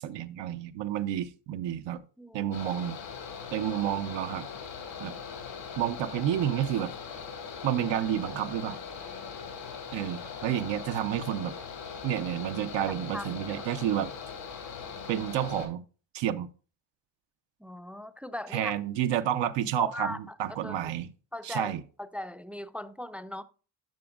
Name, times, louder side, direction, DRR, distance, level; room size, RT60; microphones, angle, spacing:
voice 1, 0.0-2.0 2.3-3.0 3.5-4.5 5.0-5.1 5.8-6.9 7.6-8.8 9.9-11.5 12.0-14.1 15.1-15.8 16.1-16.5 18.5-21.1 21.4-21.8, right 11 dB, 80° right, 0.7 m, -30 dB
voice 2, 2.2-2.5 13.1-13.7 17.6-18.7 19.8-20.4 20.6-20.7 21.3-21.7 22.0-23.4, left 1 dB, 5° right, 0.4 m, -39 dB
Mechanical fan, 2.5-15.7, left 6 dB, 80° left, 2.5 m, -41 dB
10.5 x 6.0 x 2.4 m
cardioid pair, 80°, 43 cm